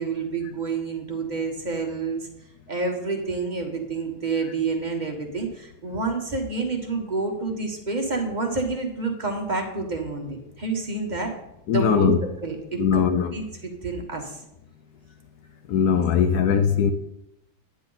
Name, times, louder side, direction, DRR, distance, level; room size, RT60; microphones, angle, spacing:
voice 1, 0.0-2.3 2.7-11.3 11.7-13.0 13.3-14.4, right 3 dB, 25° right, 1.1 m, -28 dB
voice 2, 11.7-12.2 12.8-13.3 15.7-16.9, left 7 dB, 70° left, 0.9 m, -20 dB
9.7 x 9.6 x 3.9 m
omnidirectional pair, 2.3 m